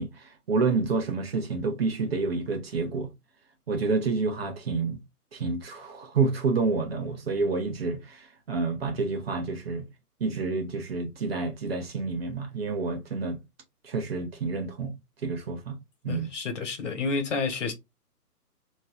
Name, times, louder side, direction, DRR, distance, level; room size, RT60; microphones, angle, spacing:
voice 1, 0.0-3.1 3.7-5.0 5.3-9.9 10.2-13.4 13.8-14.9 15.2-15.8 16.0-16.3, right 4 dB, 40° right, 1.1 m, -29 dB
voice 2, 16.1-17.7, left 4 dB, 50° left, 1.4 m, -30 dB
3.8 x 3.2 x 3.8 m
hypercardioid pair, 150°, 47 cm